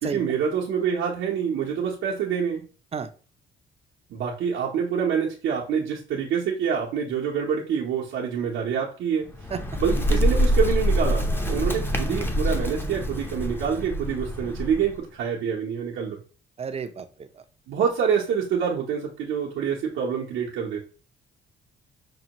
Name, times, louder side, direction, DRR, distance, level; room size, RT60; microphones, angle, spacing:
voice 1, 0.0-2.6 4.1-9.3 9.8-16.2 17.7-20.8, right 7 dB, 85° right, -4 dB, 0.8 m, -26 dB
Bird, 9.2-15.0, equal, 10° left, 0.6 m, -25 dB
voice 2, 16.6-17.4, right 6 dB, 30° right, 9 dB, 0.5 m, -32 dB
5.4 x 2.2 x 2.9 m, 0.37 s
cardioid pair, 90°, 20 cm